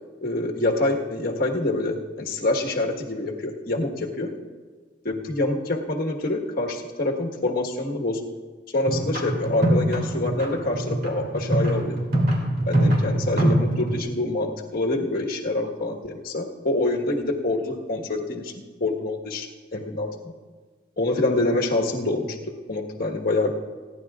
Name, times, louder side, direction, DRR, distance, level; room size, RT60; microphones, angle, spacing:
voice 1, 0.2-4.3 5.0-8.2 8.7-12.0 12.7-18.5 18.8-20.3 21.0-23.5, left 2 dB, 50° left, 0 dB, 1.5 m, -26 dB
sound 1, 8.9-14.0, right 1 dB, 55° right, 2.6 m, -23 dB
28.5 x 10.5 x 2.5 m, 1.5 s
head